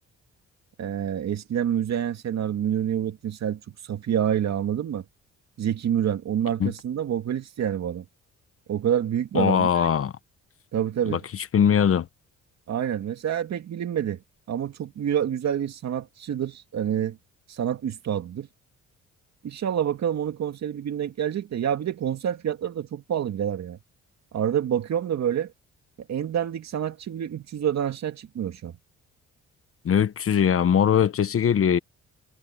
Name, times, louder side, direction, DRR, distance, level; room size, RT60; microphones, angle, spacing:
voice 1, 0.8-5.0 5.6-8.0 8.7-9.9 10.7-11.2 12.7-14.2 14.5-17.2 17.5-18.5 19.4-23.8 24.3-25.5 26.1-28.7, right 9 dB, 60° right, 2.4 m, -27 dB
voice 2, 9.3-10.1 11.1-12.1 29.8-31.8, left 8 dB, 50° left, 1.1 m, -21 dB
cardioid pair, 90°, 30 cm